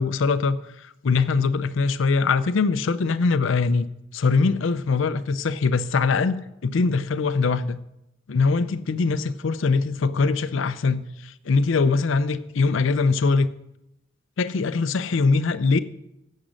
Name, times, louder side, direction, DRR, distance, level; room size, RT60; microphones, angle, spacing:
voice 1, 0.0-7.8 8.3-13.5 14.4-15.8, left 4 dB, 80° left, 0.5 m, -22 dB
10.0 x 7.4 x 6.3 m
head